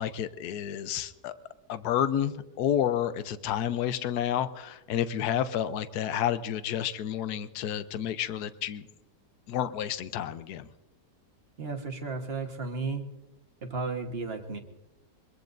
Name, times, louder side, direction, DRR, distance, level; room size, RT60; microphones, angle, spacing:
voice 1, 0.0-1.3 1.7-8.9 9.5-10.7, left 10 dB, 70° left, 12 dB, 1.2 m, -30 dB
voice 2, 11.6-13.1 13.6-14.6, right 4 dB, 35° right, 4 dB, 1.5 m, -34 dB
23.0 x 22.0 x 2.6 m, 1.0 s
omnidirectional pair, 1.8 m